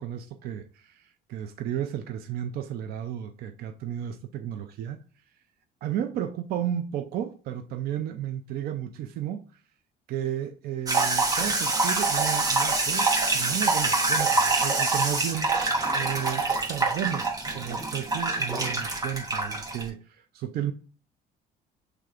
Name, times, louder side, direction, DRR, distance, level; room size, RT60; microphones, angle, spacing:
voice 1, 0.0-5.0 5.8-9.6 10.1-20.7, right 10 dB, 65° right, 0.4 m, -33 dB
sound 1, 10.9-19.9, right 3 dB, 20° right, 0.8 m, -25 dB
6.2 x 3.3 x 2.4 m
cardioid pair, 110°, 17 cm